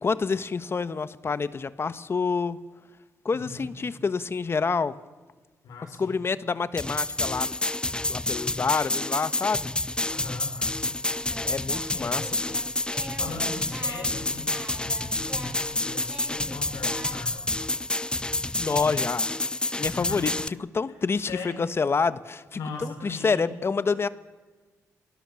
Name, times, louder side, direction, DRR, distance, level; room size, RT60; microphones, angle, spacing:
voice 1, 0.0-2.6 3.2-4.9 6.0-7.6 8.1-9.7 11.4-12.6 18.6-19.3 19.7-20.3 20.6-22.6 23.0-24.1, left 5 dB, 40° left, 14 dB, 1.2 m, -27 dB
voice 2, 3.3-3.7 5.6-6.2 10.1-10.9 11.4-17.5 19.6-20.5 21.3-21.7 22.5-23.5, left 3 dB, 90° left, 3 dB, 5.6 m, -40 dB
sound 1, 6.8-20.5, left 2 dB, 15° left, 0.7 m, -29 dB
Singing, 11.1-17.4, right 1 dB, 15° right, 5.9 m, -43 dB
28.0 x 19.5 x 7.1 m, 1.3 s
cardioid pair, 75°, 6 cm